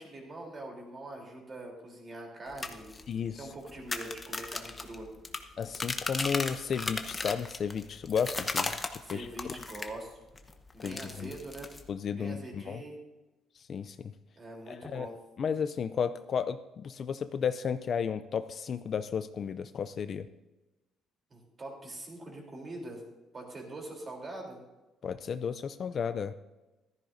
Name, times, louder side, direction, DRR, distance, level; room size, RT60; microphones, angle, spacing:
voice 1, 0.0-3.0 3.4-5.1 9.0-10.2 10.7-11.7 12.1-13.0 14.4-15.2 21.3-23.1 23.3-24.6, right 2 dB, 25° right, 0 dB, 3.4 m, -43 dB
sound 1, 2.5-10.0 10.3-11.9, left 3 dB, 20° left, 0.9 m, -36 dB
voice 2, 3.1-3.5 5.6-9.3 10.8-11.3 11.9-12.8 13.7-14.1 14.7-15.1 15.4-20.3 25.0-26.3, left 7 dB, 40° left, 11 dB, 0.4 m, -33 dB
15.0 x 14.0 x 2.7 m, 1.1 s
cardioid pair, 155°, 0 cm